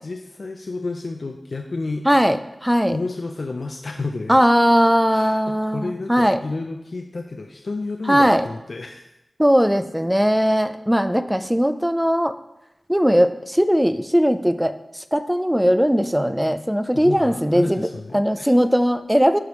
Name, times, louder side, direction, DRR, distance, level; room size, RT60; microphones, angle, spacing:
voice 1, 0.0-2.1 2.9-4.4 5.1-9.1 16.9-18.5, left 3 dB, 65° left, 3 dB, 0.5 m, -31 dB
voice 2, 2.1-3.0 4.3-6.4 8.1-8.5 9.4-12.3 12.9-17.9 18.1-19.4, equal, 5° right, 10 dB, 0.4 m, -19 dB
12.0 x 4.9 x 3.1 m, 0.91 s
wide cardioid pair, 75°, 0 cm